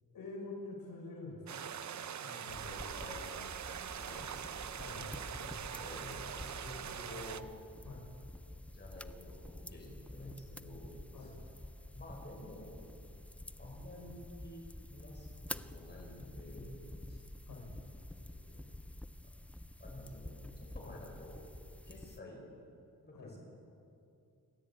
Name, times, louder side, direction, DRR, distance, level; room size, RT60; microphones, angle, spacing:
voice 1, 0.1-1.6 2.2-2.8 4.8-5.1 5.4-5.8 7.9-8.0 11.1-11.4 17.5-17.7 20.8-20.9 23.1-23.3, left 2 dB, 75° left, -1 dB, 6.0 m, -47 dB
sound 1, 1.5-7.4, right 8 dB, 50° right, 0.8 m, -43 dB
sound 2, 2.5-22.2, left 1 dB, 5° left, 0.5 m, -49 dB
voice 2, 2.6-3.3 3.6-5.2 5.8-7.5 8.7-11.3 11.9-12.8 13.6-14.7 14.9-15.3 15.5-16.8 17.1-17.3 17.8-18.7 19.8-20.3 20.7-21.4 21.8-22.5 23.0-23.4, left 1 dB, 30° left, -1 dB, 6.2 m, -50 dB
28.5 x 12.5 x 8.6 m, 2.7 s
cardioid pair, 100°, 36 cm